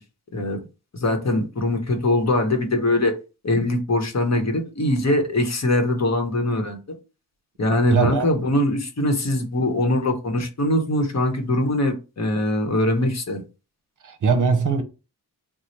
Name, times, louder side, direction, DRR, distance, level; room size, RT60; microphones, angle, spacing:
voice 1, 0.9-3.1 3.4-6.8 7.6-13.4, left 1 dB, 45° left, 0.9 m, -22 dB
voice 2, 7.9-8.3 14.0-14.8, right 5 dB, 50° right, 0.7 m, -20 dB
3.0 x 2.0 x 4.0 m
cardioid pair, 50°, 38 cm